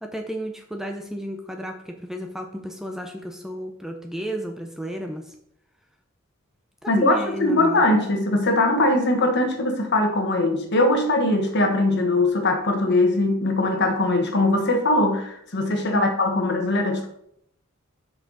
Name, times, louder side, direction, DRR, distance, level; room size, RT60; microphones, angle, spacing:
voice 1, 0.0-5.4 6.8-7.8 15.8-16.1, equal, ahead, 3 dB, 0.6 m, -32 dB
voice 2, 6.9-17.1, left 2 dB, 55° left, 4 dB, 1.3 m, -21 dB
7.5 x 5.8 x 3.9 m, 0.71 s
head